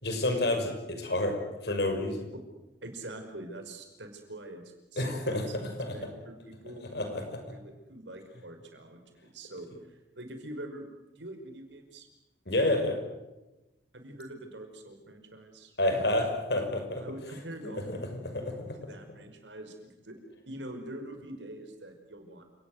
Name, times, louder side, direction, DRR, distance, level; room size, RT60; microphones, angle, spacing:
voice 1, 0.0-2.3 5.0-5.9 6.9-7.4 12.5-13.0 15.8-17.0 17.6-18.0 18.3-18.8, left 1 dB, 65° left, 5 dB, 6.0 m, -29 dB
voice 2, 2.8-4.6 4.9-5.6 5.9-10.9 11.2-12.1 13.9-15.7 17.0-18.1 18.8-20.2 20.5-22.4, right 1 dB, 85° right, 6 dB, 5.4 m, -44 dB
30.0 x 19.0 x 8.0 m, 1.0 s
head